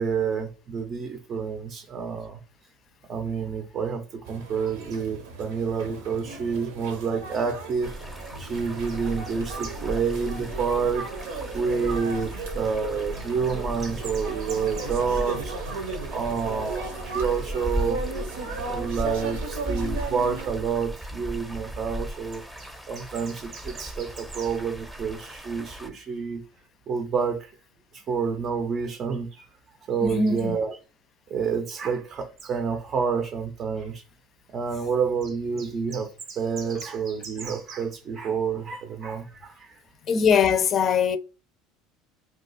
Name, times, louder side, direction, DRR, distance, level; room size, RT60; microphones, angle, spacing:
voice 1, 0.0-2.4 3.1-7.9 8.4-15.6 16.1-18.0 18.6-26.4 26.9-27.5 27.9-29.5 29.9-30.8 31.3-34.0 34.5-39.8, right 6 dB, 45° right, 0.5 m, -29 dB
sound 1, 4.2-20.6, right 4 dB, 85° right, 0.8 m, -36 dB
sound 2, 7.8-25.9, equal, 5° right, 0.7 m, -36 dB
voice 2, 30.0-30.6 40.1-41.2, left 6 dB, 45° left, 0.4 m, -21 dB
2.7 x 2.3 x 3.9 m
supercardioid pair, 95°, 0 cm